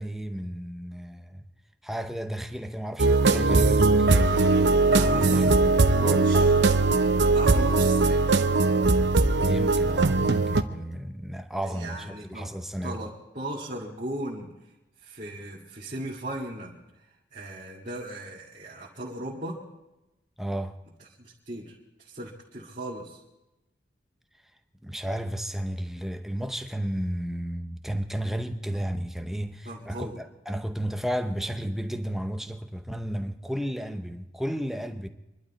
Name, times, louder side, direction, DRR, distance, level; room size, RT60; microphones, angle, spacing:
voice 1, 0.0-1.5 1.8-4.4 4.9-6.5 9.4-13.1 20.4-20.8 24.8-35.1, equal, ahead, 0.7 m, -33 dB
sound 1, 3.0-10.6, right 3 dB, 65° right, 0.7 m, -20 dB
voice 2, 4.9-5.6 5.8-6.5 7.3-8.3 11.6-12.5 12.8-13.1 13.3-14.5 15.0-16.8 17.3-19.6 21.5-23.2 29.7-30.2, right 1 dB, 40° right, 2.0 m, -37 dB
25.5 x 12.0 x 4.2 m
head